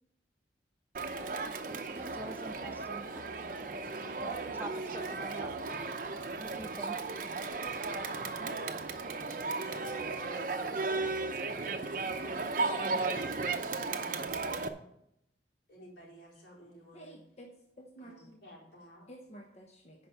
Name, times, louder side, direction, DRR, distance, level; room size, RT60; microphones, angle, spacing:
Crowd, 0.9-14.7, right 3 dB, 45° right, 0.7 m, -35 dB
voice 1, 1.9-3.2 4.2-5.5 6.4-7.1, right 2 dB, 10° right, 9 dB, 0.3 m, -46 dB
voice 2, 10.1-10.8 11.6-12.9 15.7-17.2 18.0-19.1, equal, 70° left, -4 dB, 4.2 m, -55 dB
voice 3, 16.9-17.5 17.8-18.4 19.1-20.1, right 1 dB, 35° left, 0 dB, 1.0 m, -51 dB
10.5 x 5.1 x 6.8 m, 0.78 s
head